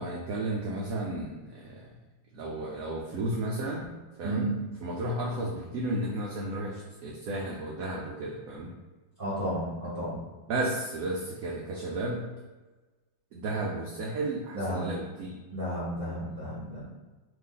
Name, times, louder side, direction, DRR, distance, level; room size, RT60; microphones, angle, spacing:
voice 1, 0.0-1.9 2.3-3.9 4.2-4.5 4.8-8.7 10.5-12.3 13.3-15.4, right 1 dB, 80° right, -3 dB, 0.7 m, -33 dB
voice 2, 9.2-10.2 14.5-14.9 15.5-16.8, right 1 dB, 35° right, -10 dB, 0.9 m, -32 dB
2.9 x 2.6 x 3.8 m, 1.2 s
omnidirectional pair, 2.0 m